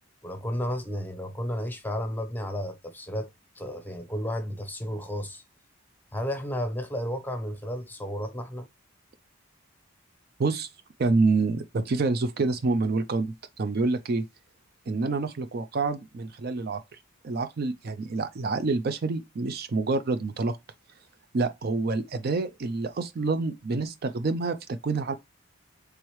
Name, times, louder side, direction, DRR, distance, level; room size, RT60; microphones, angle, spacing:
voice 1, 0.2-5.4 6.1-8.7, equal, 10° left, 0.7 m, -32 dB
voice 2, 11.0-14.2 14.9-16.8 17.2-20.6 21.3-25.1, right 3 dB, 45° right, 0.4 m, -27 dB
4.7 x 3.5 x 3.1 m
head